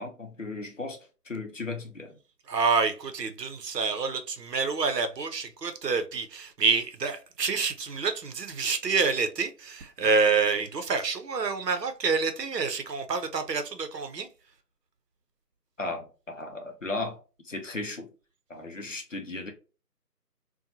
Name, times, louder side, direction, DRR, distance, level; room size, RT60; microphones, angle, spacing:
voice 1, 0.0-2.2 15.8-17.2 17.4-18.1 18.5-19.5, left 2 dB, 50° left, 0.6 m, -36 dB
voice 2, 2.5-14.3, right 4 dB, 75° right, 0.7 m, -27 dB
2.8 x 2.2 x 2.5 m
figure-of-eight pair, 170°, 49 cm